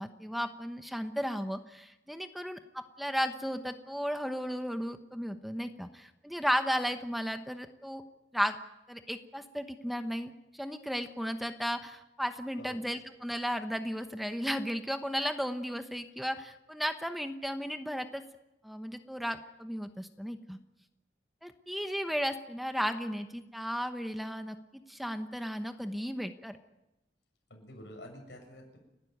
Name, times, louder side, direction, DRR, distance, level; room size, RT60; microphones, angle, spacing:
voice 1, 0.0-8.0 8.3-8.6 8.9-18.2 18.6-20.6 21.4-24.6 24.9-26.6, equal, ahead, 8 dB, 1.0 m, -34 dB
voice 2, 27.5-28.8, left 1 dB, 90° left, 1 dB, 7.4 m, -48 dB
29.5 x 12.0 x 9.4 m, 0.95 s
head